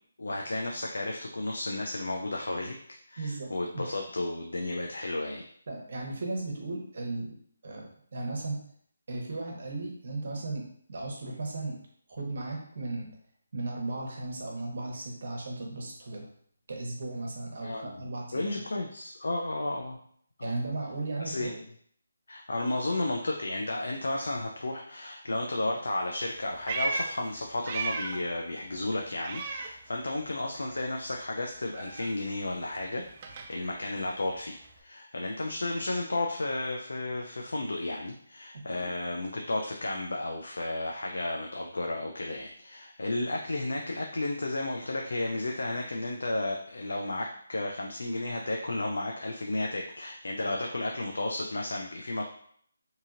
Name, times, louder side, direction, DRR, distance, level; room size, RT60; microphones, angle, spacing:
voice 1, 0.2-2.8 3.1-5.5 17.6-18.0 18.3-20.0 20.4-20.5 21.2-21.5 22.3-52.3, left 2 dB, 80° left, 1 dB, 0.4 m, -33 dB
voice 2, 3.2-3.8 5.7-7.3 7.6-8.6 9.1-11.8 12.1-13.1 13.5-16.2 16.7-18.6 20.4-21.6 38.7-38.8, right 2 dB, 55° right, 0 dB, 0.8 m, -36 dB
Meow, 26.2-28.3 28.6-30.4 30.6-34.8, right 4 dB, 30° right, 0.3 m, -37 dB
2.8 x 2.6 x 2.5 m, 0.62 s
figure-of-eight pair, 165°, 0 cm